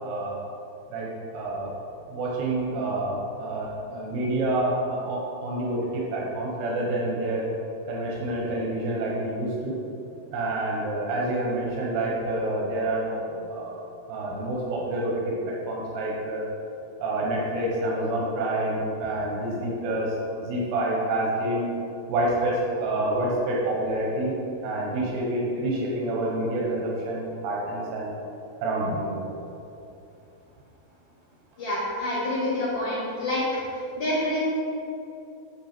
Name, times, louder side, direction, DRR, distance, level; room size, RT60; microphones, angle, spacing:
voice 1, 0.0-0.3 0.9-1.7 2.1-7.5 7.9-9.7 10.3-13.7 14.1-16.5 17.0-21.6 22.1-24.4 24.6-28.1 28.6-29.2, right 1 dB, 90° right, -3 dB, 3.2 m, -28 dB
voice 2, 31.6-33.4 34.0-34.4, left 1 dB, 45° left, -9 dB, 2.7 m, -27 dB
8.2 x 6.3 x 4.4 m, 2.8 s
omnidirectional pair, 4.6 m